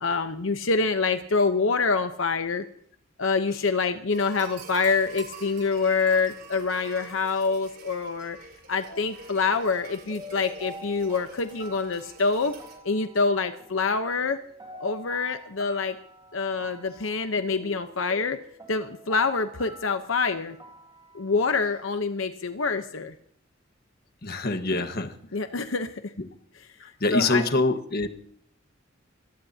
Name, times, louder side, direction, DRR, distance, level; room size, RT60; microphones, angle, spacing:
voice 1, 0.0-2.6 3.2-8.4 8.7-12.5 12.8-14.4 14.8-16.0 16.3-18.4 18.7-20.6 21.1-23.1 25.3-25.9 27.1-27.4, left 4 dB, 80° left, 8 dB, 1.0 m, -26 dB
sound 1, 4.1-12.8, right 3 dB, 55° right, 4.5 m, -46 dB
sound 2, 8.9-22.1, equal, 20° right, 2.3 m, -47 dB
voice 2, 24.2-25.1 26.8-28.1, left 2 dB, 55° left, 7 dB, 1.5 m, -25 dB
25.5 x 18.0 x 2.9 m, 0.62 s
head